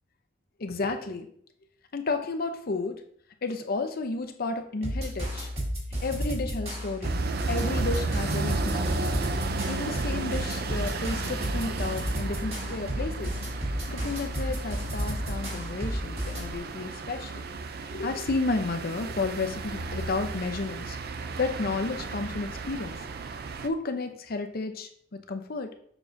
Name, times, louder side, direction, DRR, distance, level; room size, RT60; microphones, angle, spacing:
voice 1, 0.6-1.3 1.9-3.0 3.4-5.5 6.0-7.2 7.5-9.3 9.7-13.4 13.9-17.4 17.9-21.0 21.4-23.0 23.6-25.7, left 3 dB, 55° left, 7 dB, 0.7 m, -32 dB
sound 1, 4.8-16.5, equal, 35° right, 2.2 m, -32 dB
sound 2, 7.0-23.7, right 3 dB, 55° right, 0.5 m, -34 dB
7.0 x 5.9 x 2.7 m, 0.63 s
head